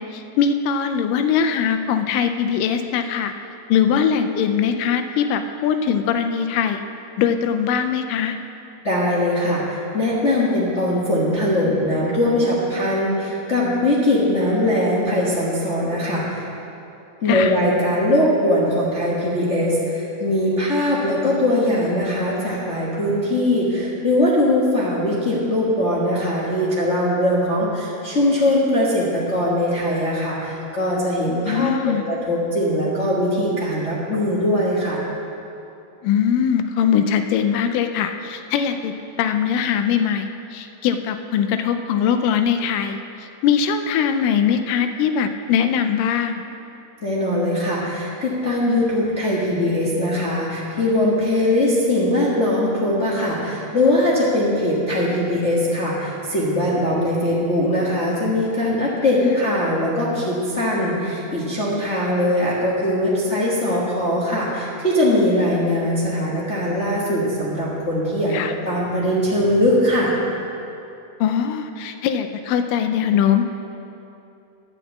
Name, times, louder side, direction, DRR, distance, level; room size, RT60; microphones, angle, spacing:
voice 1, 0.0-3.3 3.7-6.8 7.2-8.4 17.3-17.5 31.4-32.0 36.0-43.0 43.4-46.4 59.2-59.4 68.3-68.5 71.2-73.4, left 7 dB, 90° left, 7 dB, 2.2 m, -21 dB
voice 2, 8.8-16.5 17.2-35.0 47.0-68.4 68.6-70.1, left 1 dB, 65° left, -6 dB, 0.7 m, -21 dB
10.5 x 6.1 x 8.2 m, 2.7 s
omnidirectional pair, 3.7 m